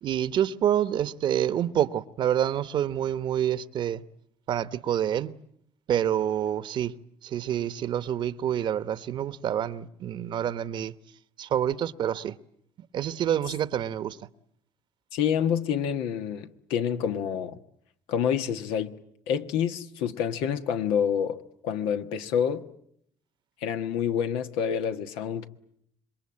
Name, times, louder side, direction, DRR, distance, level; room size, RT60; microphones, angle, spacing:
voice 1, 0.0-4.0 4.5-5.3 5.9-6.9 7.2-10.9 11.4-12.4 12.9-14.2, right 10 dB, 60° right, 1.0 m, -27 dB
voice 2, 15.1-17.6 18.1-18.9 19.3-21.4 21.6-22.6 23.6-25.5, left 8 dB, 85° left, 1.4 m, -27 dB
26.5 x 22.5 x 8.6 m
supercardioid pair, 80°, 9 cm